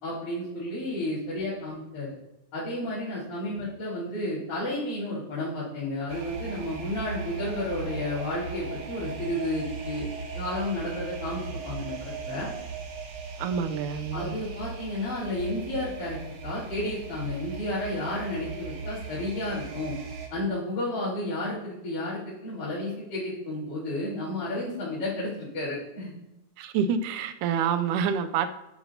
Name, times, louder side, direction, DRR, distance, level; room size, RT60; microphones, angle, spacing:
voice 1, 0.0-2.1 2.5-10.0 10.3-12.5 14.1-16.2 16.4-19.9 20.3-26.1, left 1 dB, 70° left, -14 dB, 5.0 m, -32 dB
sound 1, 6.1-20.3, right 4 dB, 60° right, 1.4 m, -38 dB
voice 2, 13.4-14.4 26.6-28.5, right 7 dB, 80° right, 9 dB, 2.1 m, -27 dB
11.5 x 7.3 x 2.7 m, 0.92 s
omnidirectional pair, 3.6 m